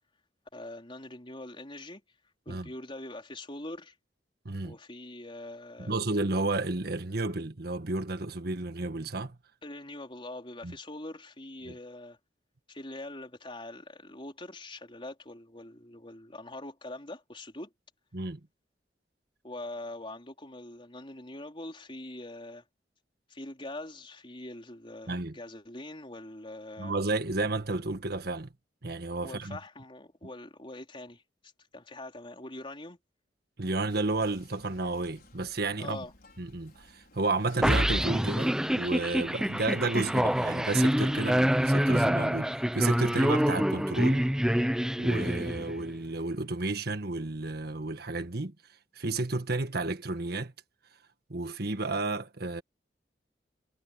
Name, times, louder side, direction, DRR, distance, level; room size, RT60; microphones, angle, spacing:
voice 1, 0.5-2.0 2.5-3.9 4.6-6.0 9.6-12.2 12.7-17.7 19.4-22.6 23.3-26.9 29.2-31.2 31.7-33.0 35.8-36.1, left 1 dB, 30° left, 4.1 m, -43 dB
voice 2, 5.8-9.4 10.6-10.7 11.7-11.8 18.1-18.4 25.1-25.4 26.8-28.5 28.8-29.6 33.6-36.0 36.4-44.2 45.0-48.5 48.9-50.5 51.3-52.6, right 2 dB, 60° right, 1.6 m, -32 dB
Whispering, 33.9-41.7, left 2 dB, 60° left, 5.6 m, -57 dB
sound 1, 37.6-45.9, equal, 5° right, 0.7 m, -26 dB
head